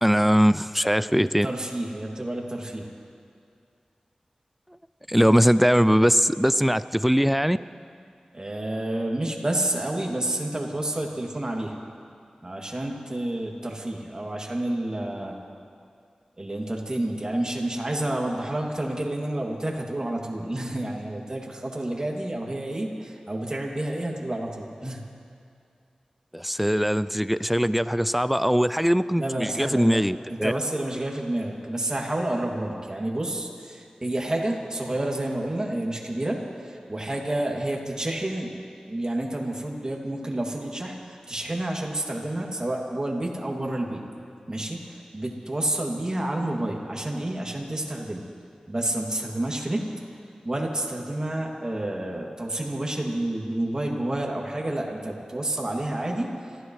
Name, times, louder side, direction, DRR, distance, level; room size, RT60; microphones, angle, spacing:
voice 1, 0.0-1.5 5.1-7.6 26.3-30.5, equal, 5° right, 14 dB, 0.3 m, -21 dB
voice 2, 1.4-2.9 8.3-11.7 12.4-15.4 16.4-25.0 29.2-30.0 30.3-38.5 38.9-44.0 44.5-48.2 48.7-49.8 50.4-56.3, right 1 dB, 30° right, -1 dB, 2.4 m, -29 dB
27.0 x 15.0 x 3.2 m, 2.3 s
wide cardioid pair, 65°, 2 cm